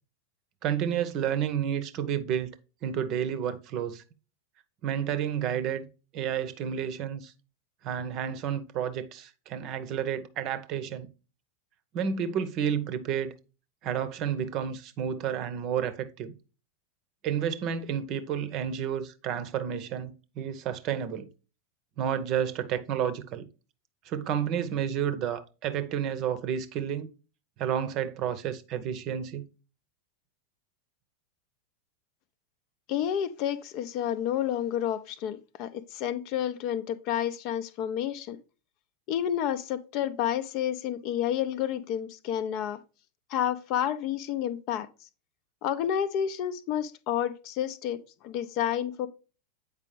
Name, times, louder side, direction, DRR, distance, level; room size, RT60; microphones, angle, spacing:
voice 1, 0.6-2.6 2.8-4.0 4.8-5.9 6.1-7.3 7.8-11.1 11.9-13.3 13.8-16.3 17.2-21.3 22.0-23.5 24.0-27.1 27.6-29.5, right 8 dB, 40° right, 0.7 m, -30 dB
voice 2, 32.9-38.4 39.1-42.8 43.3-44.9 45.6-49.1, left 10 dB, 40° left, 0.6 m, -30 dB
8.2 x 5.0 x 3.1 m
figure-of-eight pair, 90°, 0 cm